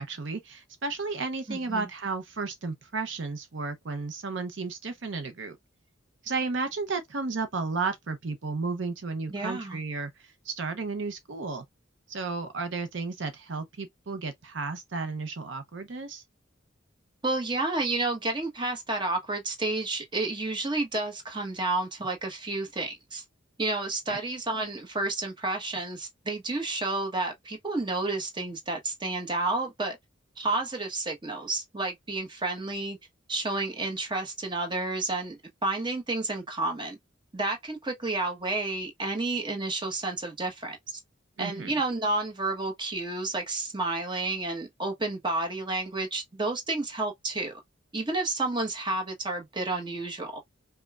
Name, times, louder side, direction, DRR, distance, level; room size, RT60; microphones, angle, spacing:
voice 1, 0.0-5.6 6.2-11.6 12.1-16.2 24.1-24.2 41.4-41.8, right 4 dB, 65° right, 0.7 m, -33 dB
voice 2, 1.5-1.9 9.3-9.8 17.2-23.2 23.6-30.0 30.4-33.0 33.3-37.0 37.3-41.0 41.4-47.6 47.9-50.4, right 2 dB, 25° right, 1.1 m, -30 dB
5.2 x 2.2 x 2.4 m
head